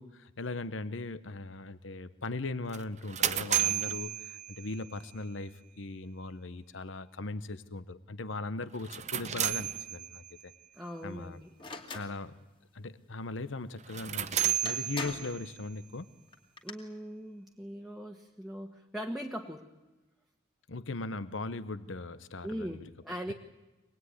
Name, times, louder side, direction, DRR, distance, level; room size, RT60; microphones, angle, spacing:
voice 1, 0.0-10.5 11.0-11.4 11.9-12.3 12.7-16.1 20.7-22.9, left 2 dB, 75° left, 13 dB, 1.0 m, -39 dB
sound 1, 2.7-5.0 8.7-10.4 13.8-15.6, right 11 dB, 35° right, 0.8 m, -33 dB
voice 2, 10.7-11.5 16.6-19.7 22.4-23.3, equal, ahead, 0 dB, 1.3 m, -40 dB
sound 2, 11.6-12.1 14.2-14.3 14.7-15.4 16.3-16.7, left 3 dB, 25° left, 2.5 m, -40 dB
25.5 x 20.0 x 9.7 m, 1.1 s
head